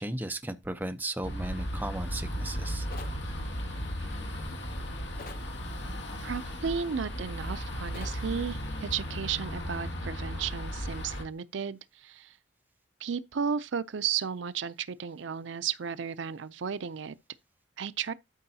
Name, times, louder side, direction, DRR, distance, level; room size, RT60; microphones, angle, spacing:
voice 1, 0.0-2.9, right 1 dB, 10° right, 0.6 m, -35 dB
sound 1, 1.2-11.2, equal, 65° left, 2.1 m, -35 dB
sound 2, 2.9-3.2 5.2-5.5 7.9-8.2, left 3 dB, 45° left, 0.8 m, -44 dB
voice 2, 6.2-12.4 13.0-17.2 17.8-18.1, right 7 dB, 70° right, 0.5 m, -34 dB
12.5 x 5.3 x 2.8 m
head